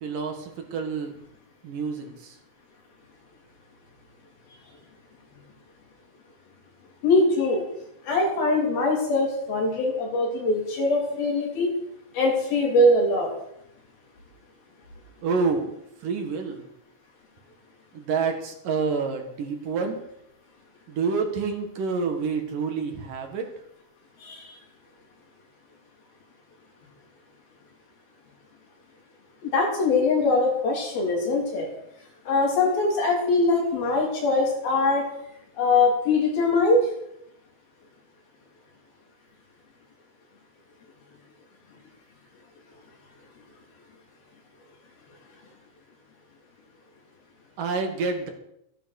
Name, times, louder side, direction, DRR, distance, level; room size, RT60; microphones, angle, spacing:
voice 1, 0.0-1.1 1.6-2.4 15.2-15.7 16.0-16.6 17.9-20.0 20.9-23.5 47.6-48.3, right 4 dB, 65° right, 4 dB, 3.3 m, -28 dB
voice 2, 7.0-7.6 8.0-11.7 12.1-13.3 24.2-24.6 29.4-31.7 32.3-35.0 35.6-36.9, left 2 dB, 70° left, 0 dB, 5.2 m, -22 dB
14.5 x 10.5 x 6.6 m, 0.77 s
omnidirectional pair, 4.4 m